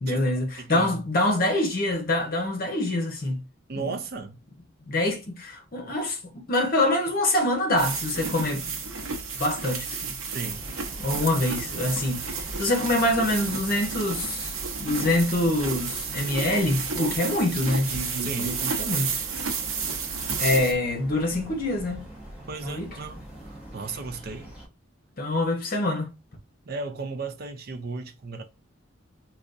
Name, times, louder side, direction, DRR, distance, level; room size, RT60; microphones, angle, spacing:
voice 1, 0.0-3.4 3.8-3.9 4.9-6.2 6.5-8.7 9.3-10.1 11.0-14.5 14.8-19.2 20.4-22.0 22.6-22.9 25.2-26.1, left 1 dB, 45° left, 0.9 m, -25 dB
voice 2, 0.6-1.0 3.7-4.4 10.3-10.7 18.2-18.6 22.5-24.5 26.7-28.4, right 4 dB, 45° right, 0.5 m, -35 dB
sound 1, 7.8-20.7, right 5 dB, 80° right, 0.8 m, -32 dB
sound 2, 10.5-24.7, right 1 dB, 5° right, 1.1 m, -44 dB
5.0 x 2.3 x 2.5 m
head